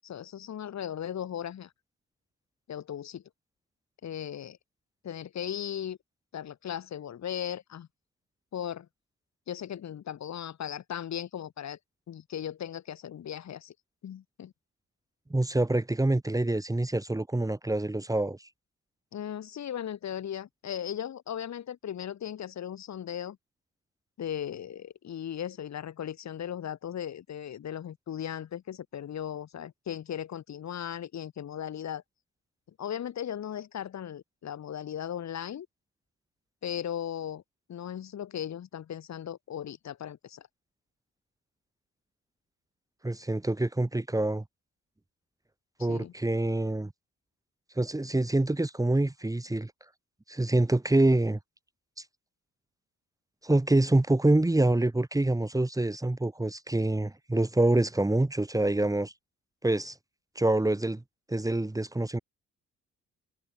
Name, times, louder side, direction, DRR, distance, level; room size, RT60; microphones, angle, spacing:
voice 1, 0.0-1.7 2.7-3.2 4.0-4.6 5.0-6.0 6.3-7.9 8.5-8.9 9.5-11.8 12.1-13.7 14.0-14.5 19.1-23.4 24.2-32.0 32.8-35.7 36.6-37.4 37.7-40.5 45.8-46.1, left 9 dB, 65° left, 7.4 m, -37 dB
voice 2, 15.3-18.5 43.0-44.4 45.8-46.9 47.8-49.7 50.3-51.4 53.4-59.1 59.6-59.9 60.3-61.0 61.3-62.2, right 2 dB, 10° right, 3.1 m, -26 dB
cardioid pair, 90°, 30 cm